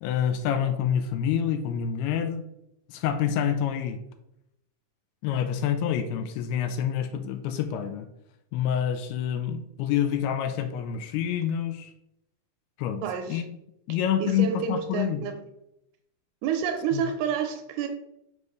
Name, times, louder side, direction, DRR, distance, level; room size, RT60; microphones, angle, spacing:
voice 1, 0.0-2.4 2.9-4.0 5.2-8.1 8.5-11.9 12.8-13.0 13.3-13.4 13.9-15.2 16.9-17.0, left 9 dB, 85° left, 8 dB, 2.5 m, -27 dB
voice 2, 13.0-13.4 14.2-15.4 16.4-17.9, right 7 dB, 80° right, 6 dB, 2.5 m, -29 dB
6.4 x 5.4 x 3.1 m, 0.81 s
omnidirectional pair, 4.8 m